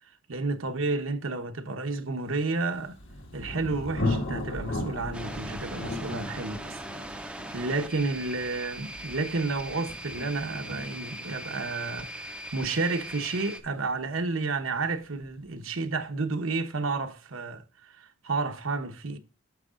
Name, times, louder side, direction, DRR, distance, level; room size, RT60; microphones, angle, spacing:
voice 1, 0.3-3.0 3.3-19.2, right 3 dB, 85° right, 1.0 m, -31 dB
Thunder, 2.6-14.2, left 2 dB, 75° left, 1.7 m, -37 dB
sound 1, 5.1-13.6, right 1 dB, 5° right, 0.4 m, -40 dB
9.4 x 7.1 x 2.4 m
head